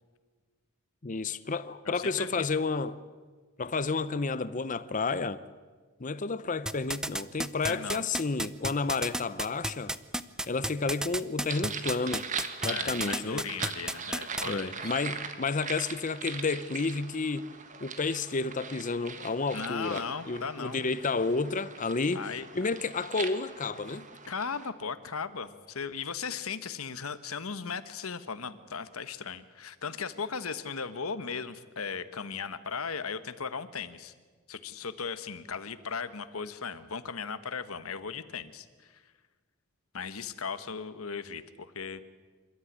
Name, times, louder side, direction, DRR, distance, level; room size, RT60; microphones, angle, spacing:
voice 1, 1.0-3.0 3.6-5.4 6.0-9.9 10.5-12.2 12.6-13.4 14.4-17.5 17.8-22.3 22.5-24.1, left 4 dB, 35° left, 0.7 m, -31 dB
voice 2, 1.8-2.5 7.7-8.0 12.7-15.0 19.5-20.8 22.1-22.5 24.3-34.1 34.5-39.0 39.9-42.0, left 5 dB, 85° left, 1.3 m, -37 dB
sound 1, 6.7-14.4, right 1 dB, 5° right, 0.6 m, -31 dB
sound 2, 11.5-24.7, right 6 dB, 35° right, 1.6 m, -40 dB
28.0 x 13.5 x 9.6 m
head